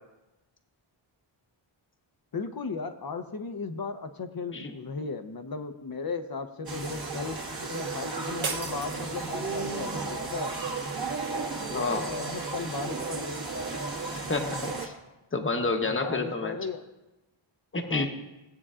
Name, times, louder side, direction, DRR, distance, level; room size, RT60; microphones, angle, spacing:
voice 1, 2.3-7.4 7.7-10.5 11.3-13.4 15.9-16.8 17.9-18.1, left 4 dB, 45° left, 8 dB, 0.8 m, -36 dB
sound 1, 6.7-14.9, right 3 dB, 45° right, 1.8 m, -34 dB
sound 2, 8.4-9.7, right 5 dB, 70° right, 1.1 m, -36 dB
voice 2, 14.3-14.9 15.3-16.5 17.7-18.1, left 3 dB, 25° left, 5 dB, 1.0 m, -29 dB
17.5 x 8.4 x 2.5 m, 1.0 s
wide cardioid pair, 120°, 49 cm